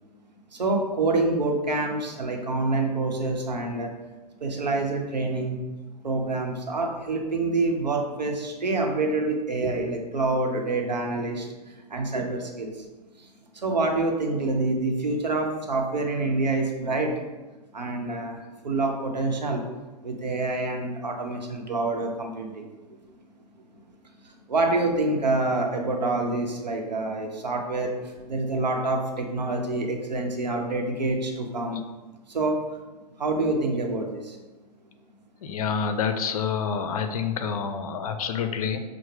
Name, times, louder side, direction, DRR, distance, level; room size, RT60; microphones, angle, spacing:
voice 1, 0.5-3.9 4.4-5.6 6.0-12.9 13.2-13.3 13.5-17.1 17.7-18.4 18.6-19.6 20.0-22.7 24.2-31.8 32.3-32.6 33.2-34.4, right 2 dB, 85° right, 2 dB, 0.8 m, -27 dB
voice 2, 35.4-38.8, left 6 dB, 60° left, 7 dB, 0.5 m, -28 dB
5.9 x 2.1 x 3.2 m, 1.2 s
hypercardioid pair, 115°, 21 cm